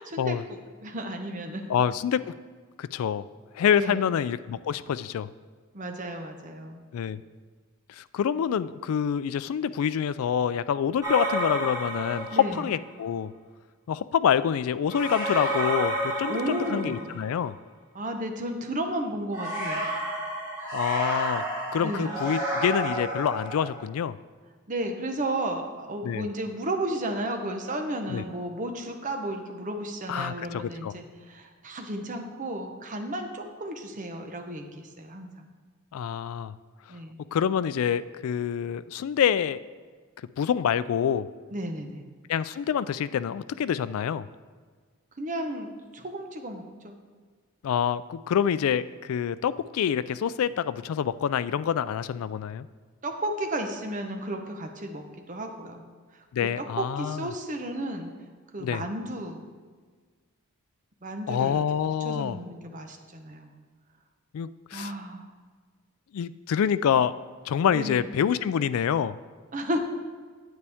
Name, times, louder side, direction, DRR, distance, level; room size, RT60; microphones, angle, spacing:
voice 1, 0.1-1.6 3.8-4.1 5.7-6.8 12.3-12.6 16.3-17.2 17.9-19.9 21.8-22.2 24.7-35.5 36.9-37.2 41.5-42.0 45.2-47.0 53.0-55.8 56.1-56.2 56.6-58.1 58.5-59.4 61.0-61.6 62.0-63.5 64.7-65.3 67.7-68.1 69.5-69.8, right 1 dB, 35° right, 4 dB, 0.8 m, -33 dB
voice 2, 1.7-2.3 2.8-3.2 3.5-5.3 6.9-7.2 7.9-13.3 13.9-17.5 20.7-21.4 21.7-24.2 26.0-26.3 28.1-28.2 30.1-30.9 35.9-36.5 37.3-39.6 40.4-41.3 42.3-44.3 47.6-52.7 56.3-57.3 58.6-58.8 61.3-62.4 64.3-64.9 66.1-67.1 67.5-69.2, left 8 dB, 75° left, 16 dB, 0.3 m, -26 dB
sound 1, 11.0-12.8 14.9-17.4 19.3-23.7, right 1 dB, 15° right, 2.3 m, -30 dB
9.5 x 8.4 x 3.5 m, 1.5 s
head